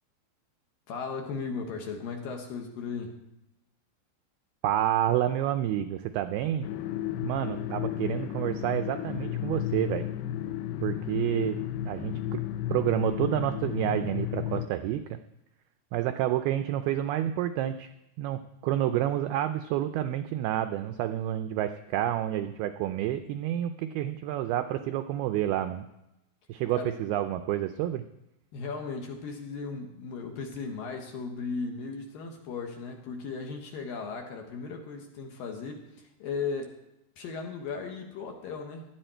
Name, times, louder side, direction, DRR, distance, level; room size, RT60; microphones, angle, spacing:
voice 1, 0.9-3.1 26.7-26.9 28.5-36.8 37.2-38.8, left 5 dB, 65° left, 3 dB, 2.6 m, -36 dB
voice 2, 4.6-6.7 7.2-10.1 10.8-12.4 12.7-15.2 15.9-17.9 18.2-25.9 26.5-28.0, right 12 dB, 90° right, 9 dB, 2.2 m, -29 dB
sound 1, 6.6-14.7, left 12 dB, 80° left, 2.3 m, -33 dB
17.0 x 12.0 x 4.4 m, 0.89 s
omnidirectional pair, 5.2 m